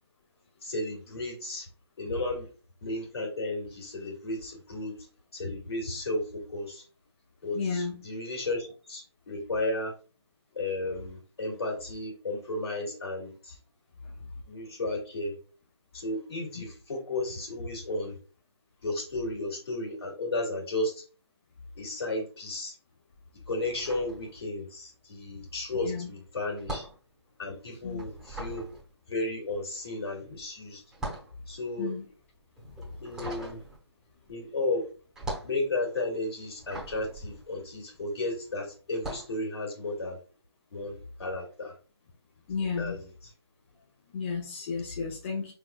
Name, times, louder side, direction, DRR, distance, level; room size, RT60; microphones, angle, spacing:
voice 1, 0.6-1.7 2.0-2.5 2.8-4.9 5.3-6.8 7.4-9.9 10.6-13.6 14.5-15.4 15.9-18.2 18.8-21.0 21.8-22.7 23.5-26.9 27.4-28.7 29.1-30.8 31.5-32.0 33.0-33.6 34.3-34.9 35.4-40.2 40.7-41.7 42.8-43.1, left 2 dB, 65° left, 0 dB, 1.9 m, -33 dB
voice 2, 7.5-8.0 14.0-14.3 16.5-16.6 25.7-26.1 27.8-28.0 31.8-32.0 42.5-43.0 44.1-45.5, left 5 dB, 25° left, 0 dB, 0.6 m, -33 dB
sound 1, 23.6-24.9 25.1-38.3 38.9-39.4, right 1 dB, 5° right, 1.0 m, -41 dB
4.3 x 3.5 x 2.2 m, 0.38 s
figure-of-eight pair, 150°, 14 cm